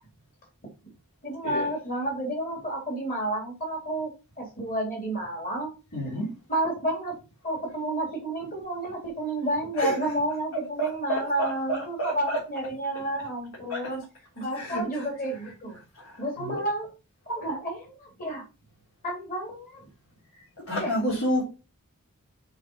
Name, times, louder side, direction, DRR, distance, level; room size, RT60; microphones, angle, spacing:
voice 1, 1.2-4.1 4.4-5.7 6.5-7.2 7.4-14.0 14.4-15.8 16.2-16.9 17.3-18.4 19.0-19.9 20.8-20.9, right 1 dB, 40° left, 3.1 m, -30 dB
voice 2, 5.9-6.3 9.7-10.1 10.5-12.4 13.7-13.9 14.5-15.1 15.4-15.5 16.0-16.6 20.7-21.4, equal, 75° left, 3.5 m, -30 dB
6.5 x 4.6 x 5.4 m
head